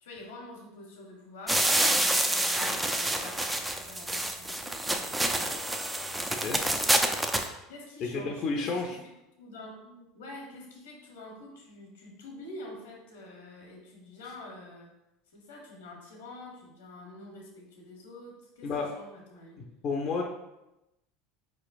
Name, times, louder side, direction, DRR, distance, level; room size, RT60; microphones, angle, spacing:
voice 1, 0.0-5.6 7.7-14.9 15.3-19.6, left 2 dB, 85° left, 0 dB, 1.0 m, -47 dB
sound 1, 1.5-7.5, right 1 dB, 10° right, 0.4 m, -27 dB
voice 2, 8.1-9.0 18.6-18.9 19.8-20.2, left 4 dB, 45° left, 1 dB, 0.5 m, -30 dB
4.3 x 3.1 x 2.5 m, 0.91 s
hypercardioid pair, 90°, 0 cm